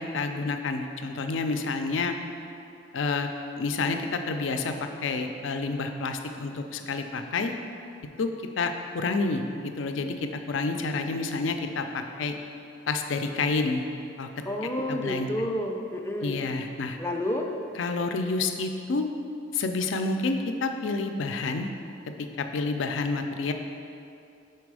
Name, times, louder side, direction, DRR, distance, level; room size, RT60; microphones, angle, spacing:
voice 1, 0.0-2.2 2.9-3.3 3.6-7.5 8.2-8.3 8.6-12.4 12.9-13.8 14.2-14.3 14.9-15.3 16.2-17.0 17.8-19.1 19.5-21.7 22.2-23.5, left 3 dB, 85° left, 6 dB, 0.5 m, -29 dB
voice 2, 14.5-16.4 17.0-17.5, left 1 dB, 15° left, 2 dB, 0.4 m, -30 dB
6.0 x 4.5 x 4.8 m, 2.6 s
head